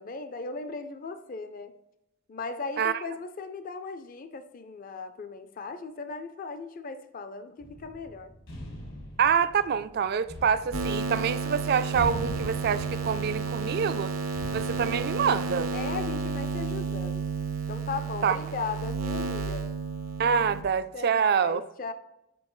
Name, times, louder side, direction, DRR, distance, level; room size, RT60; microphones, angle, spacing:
voice 1, 0.0-1.7 2.3-8.3 15.7-17.2 17.7-19.7 20.9-21.9, left 4 dB, 40° left, 0.4 m, -37 dB
sound 1, 7.6-16.3, left 1 dB, 75° left, 1.8 m, -42 dB
voice 2, 9.2-14.1 14.5-15.7 18.2-18.4 20.2-21.6, right 7 dB, 50° right, 0.3 m, -26 dB
sound 2, 10.7-20.6, right 4 dB, 90° right, 0.8 m, -32 dB
8.4 x 4.6 x 3.1 m
head